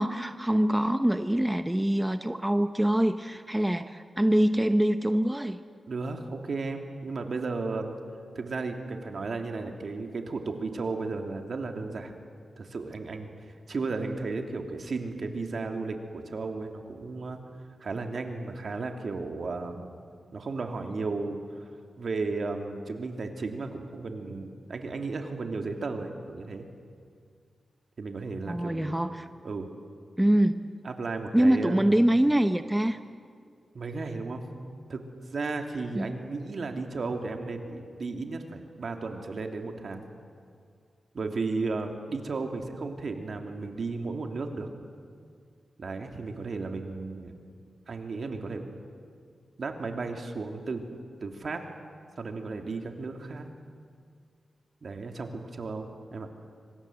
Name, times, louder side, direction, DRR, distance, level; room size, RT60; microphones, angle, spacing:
voice 1, 0.0-5.6 28.5-29.3 30.2-30.7 31.3-33.0 35.9-36.1, right 1 dB, 10° right, 9 dB, 0.9 m, -24 dB
voice 2, 5.9-7.9 8.3-12.1 12.6-13.3 13.7-17.4 17.8-19.9 20.3-21.4 22.0-26.7 28.0-29.0 29.4-29.7 30.8-31.9 33.7-34.4 34.9-35.0 35.3-40.1 41.1-44.7 45.8-47.3 47.9-48.8 49.6-50.8 51.2-51.6 52.2-53.5 54.8-56.3, right 3 dB, 60° right, 4 dB, 2.9 m, -34 dB
25.5 x 25.5 x 8.0 m, 2.2 s
cardioid pair, 70°, 0 cm